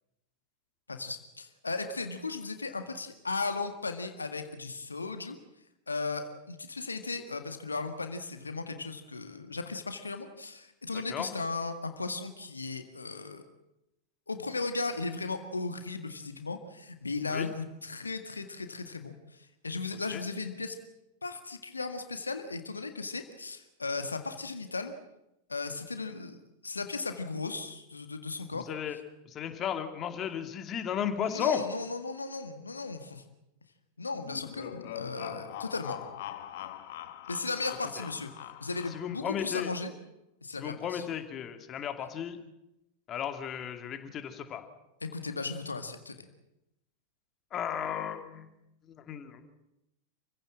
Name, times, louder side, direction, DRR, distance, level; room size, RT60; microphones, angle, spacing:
voice 1, 0.9-5.4 5.9-13.4 14.3-20.8 21.2-24.9 25.5-28.7 31.2-33.2 34.0-36.0 37.3-38.3 38.6-39.9 40.4-41.0 45.0-46.2, left 3 dB, 80° left, 8 dB, 1.8 m, -36 dB
voice 2, 10.9-11.4 17.3-17.5 20.1-20.2 28.5-29.0 29.3-31.6 38.0-38.1 38.9-39.7 40.6-42.4 43.1-44.7 47.5-48.5 48.9-49.5, left 9 dB, 30° left, 7 dB, 2.5 m, -34 dB
sound 1, 34.2-39.3, left 12 dB, 55° left, 1.4 m, -43 dB
28.0 x 16.0 x 7.6 m, 0.91 s
figure-of-eight pair, 90°, 0 cm